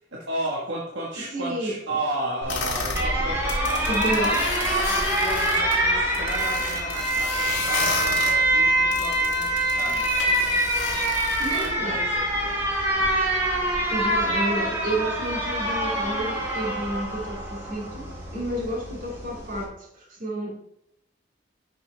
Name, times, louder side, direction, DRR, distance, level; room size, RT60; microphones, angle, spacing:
voice 1, 0.1-10.1 11.5-13.1 13.5-13.7, right 1 dB, 65° right, 1.4 m, -34 dB
voice 2, 1.2-2.0 3.1-3.3 3.8-4.6 11.4-12.1 13.9-20.5, right 1 dB, 45° right, 2.6 m, -31 dB
Alarm, 2.4-19.6, right 1 dB, 15° right, 2.5 m, -25 dB
sound 1, 2.5-3.1 3.4-5.7 6.1-8.4 8.9-11.7, left 4 dB, 65° left, 1.9 m, -32 dB
10.5 x 5.5 x 3.3 m
head